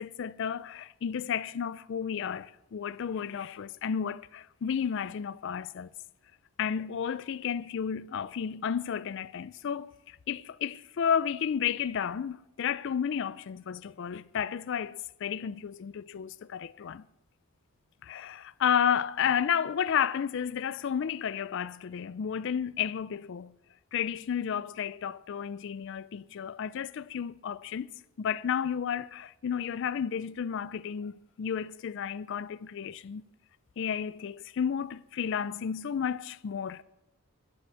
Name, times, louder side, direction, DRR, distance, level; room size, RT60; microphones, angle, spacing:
voice 1, 0.0-5.9 6.6-17.0 18.0-23.5 23.9-27.9 28.2-33.2 33.8-36.8, left 8 dB, 60° left, 0.4 m, -32 dB
11.0 x 7.0 x 9.4 m
head